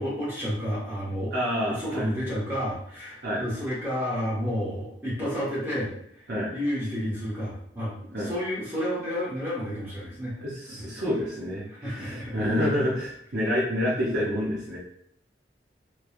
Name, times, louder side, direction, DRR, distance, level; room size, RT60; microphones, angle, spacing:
voice 1, 0.0-1.3 1.6-6.3 6.5-7.9 8.2-10.3 10.7-10.9 11.7-12.4, equal, 10° right, -9 dB, 1.0 m, -31 dB
voice 2, 1.3-2.1 3.2-3.4 6.3-6.5 8.1-8.3 10.4-14.8, equal, 60° right, -6 dB, 0.7 m, -28 dB
3.1 x 2.3 x 2.3 m, 0.71 s
head